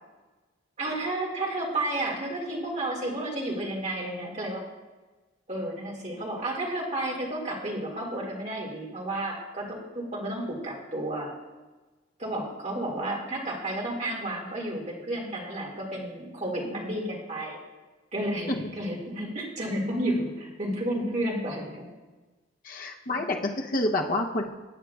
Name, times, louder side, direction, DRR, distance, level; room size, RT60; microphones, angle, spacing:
voice 1, 0.8-4.6 5.5-11.3 12.2-17.6 18.1-21.9, right 1 dB, 40° right, -2 dB, 2.0 m, -31 dB
voice 2, 22.6-24.5, left 2 dB, 50° left, 2 dB, 0.8 m, -28 dB
15.0 x 9.1 x 2.4 m, 1.2 s
head